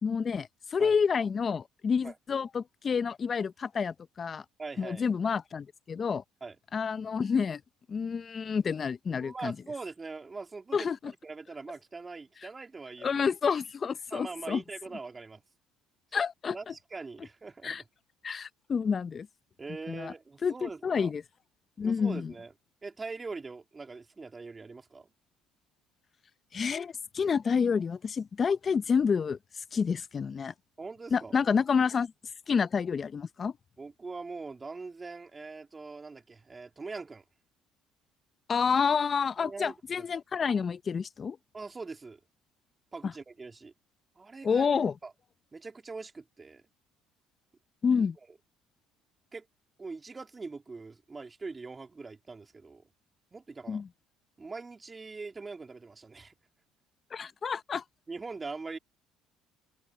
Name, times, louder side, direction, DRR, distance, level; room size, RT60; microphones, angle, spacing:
voice 1, 0.0-4.4 4.8-6.2 6.7-7.6 7.9-9.6 10.7-11.1 13.0-14.6 16.1-16.7 17.6-17.8 18.2-19.3 19.9-20.1 20.4-21.2 21.8-22.3 26.5-29.4 29.7-30.5 31.1-32.1 32.5-33.5 38.5-41.4 43.0-43.1 44.4-44.9 47.8-48.2 53.7-53.9 57.1-57.8, left 6 dB, 40° left, 0.8 m, -29 dB
voice 2, 4.6-5.0 6.4-6.6 9.2-10.9 11.2-13.2 14.1-15.4 16.5-17.8 19.6-21.1 21.8-22.5 22.8-25.1 30.8-31.3 33.8-37.2 39.4-40.0 41.5-42.2 42.9-43.7 44.2-44.7 45.0-45.1 45.5-46.6 49.3-49.5 49.8-52.9 53.3-53.8 54.4-56.3 58.1-58.8, right 4 dB, 25° right, 3.8 m, -42 dB
supercardioid pair, 80°, 0 cm